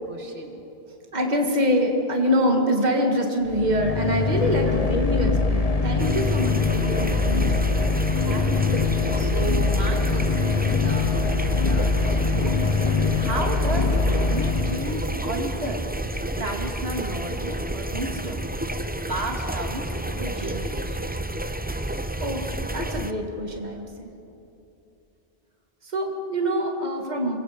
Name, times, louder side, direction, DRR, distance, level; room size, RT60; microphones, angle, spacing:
voice 1, 0.1-0.6 4.6-4.9 8.2-12.8 13.2-15.8 16.4-18.4 19.1-21.1, right 2 dB, 80° right, 2 dB, 2.2 m, -33 dB
voice 2, 1.1-7.7 22.2-24.1 25.8-27.3, equal, 45° right, 2 dB, 2.1 m, -25 dB
sound 1, 3.4-15.3, left 4 dB, 35° left, 1.2 m, -23 dB
sound 2, 6.0-23.1, right 1 dB, 10° right, 0.6 m, -30 dB
26.5 x 22.5 x 5.1 m, 2.8 s
omnidirectional pair, 1.1 m